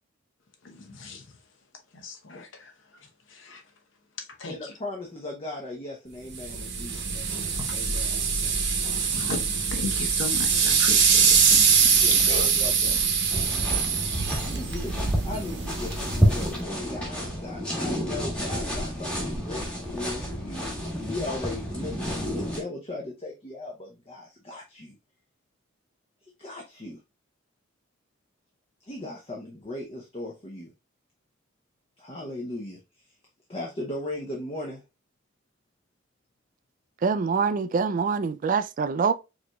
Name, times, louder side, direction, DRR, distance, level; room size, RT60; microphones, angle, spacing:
voice 1, 0.6-1.3 1.9-3.6 4.2-4.8 7.4-8.0 9.0-12.7, left 3 dB, 65° left, 0.9 m, -37 dB
voice 2, 4.5-7.4 7.7-8.2 11.9-13.0 14.4-20.7 21.1-25.0 26.4-27.0 28.9-30.7 32.0-32.8 33.5-34.8, left 1 dB, 30° left, 0.7 m, -37 dB
sound 1, 6.3-16.6, right 6 dB, 60° right, 0.9 m, -23 dB
sound 2, 13.3-22.6, equal, 5° left, 1.2 m, -29 dB
voice 3, 37.0-39.1, right 5 dB, 40° right, 0.3 m, -25 dB
4.9 x 3.1 x 2.2 m
head